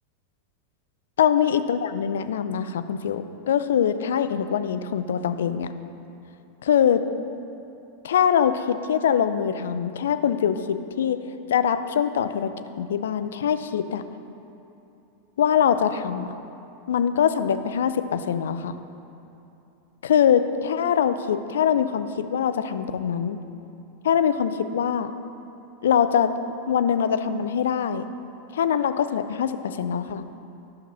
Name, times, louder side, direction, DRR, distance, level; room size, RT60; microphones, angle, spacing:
voice 1, 1.2-5.7 6.6-7.0 8.0-11.2 11.5-12.5 12.8-14.0 15.4-16.3 16.9-18.8 20.0-23.4 24.0-25.1 25.8-26.3 26.7-28.0 28.5-30.2, left 8 dB, 70° left, 10 dB, 0.5 m, -23 dB
10.5 x 5.8 x 5.7 m, 2.8 s
hypercardioid pair, 95°, 0 cm